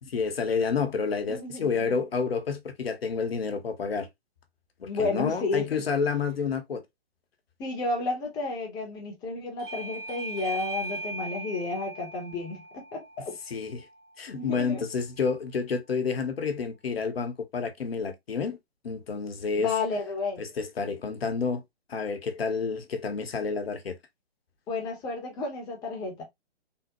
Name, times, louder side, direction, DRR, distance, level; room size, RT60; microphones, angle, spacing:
voice 1, 0.0-4.1 4.8-6.8 13.5-13.9 14.2-18.6 18.8-19.7 20.4-21.6 21.9-24.0, left 5 dB, 65° left, 0.9 m, -29 dB
voice 2, 1.3-1.9 4.8-5.8 7.6-13.4 14.3-14.9 19.6-20.4 24.7-26.2, left 3 dB, 10° left, 0.7 m, -32 dB
Bell / Doorbell, 9.6-14.8, right 2 dB, 20° right, 0.7 m, -40 dB
3.5 x 2.1 x 2.9 m
figure-of-eight pair, 135°, 32 cm